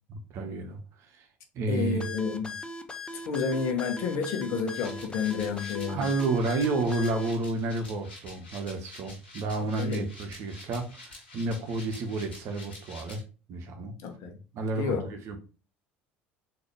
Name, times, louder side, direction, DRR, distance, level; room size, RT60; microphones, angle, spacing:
voice 1, 0.1-0.8 1.2-1.3 1.5-2.1 5.9-13.2 13.5-13.9 14.5-15.4, right 2 dB, 55° right, 0.9 m, -31 dB
voice 2, 1.7-2.6 3.3-6.1 9.8-10.0 14.0-14.4 14.8-15.1, left 5 dB, 60° left, 1.0 m, -30 dB
sound 1, 2.0-7.3, left 2 dB, 15° left, 0.7 m, -39 dB
sound 2, 4.7-13.2, left 2 dB, 85° left, 1.4 m, -48 dB
4.0 x 2.9 x 3.3 m
hypercardioid pair, 65°, 6 cm